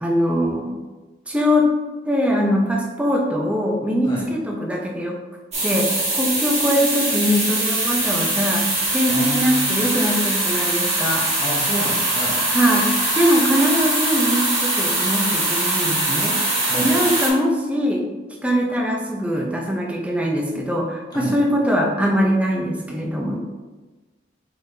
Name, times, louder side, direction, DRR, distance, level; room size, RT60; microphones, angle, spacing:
voice 1, 0.0-0.7 1.3-1.7 2.0-5.2 5.6-11.2 12.5-12.9 13.1-16.4 16.7-18.0 18.4-23.4, equal, 5° right, -1 dB, 0.5 m, -22 dB
sound 1, 5.5-17.3, right 2 dB, 35° right, 1.2 m, -22 dB
voice 2, 9.1-9.9 11.4-12.4 16.7-16.9 21.1-21.4, left 1 dB, 20° left, -6 dB, 1.0 m, -29 dB
4.7 x 4.2 x 2.7 m, 1.2 s
head